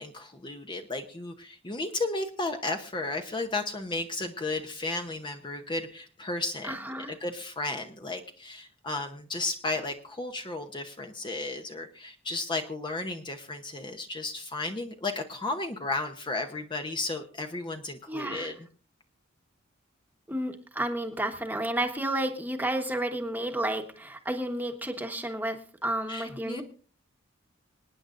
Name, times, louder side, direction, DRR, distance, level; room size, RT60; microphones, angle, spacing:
voice 1, 0.0-18.5 26.1-26.6, left 2 dB, 25° left, 5 dB, 0.8 m, -34 dB
voice 2, 6.6-7.1 18.1-18.5 20.3-26.6, right 1 dB, 10° right, 5 dB, 1.2 m, -31 dB
26.5 x 9.6 x 2.6 m, 0.39 s
head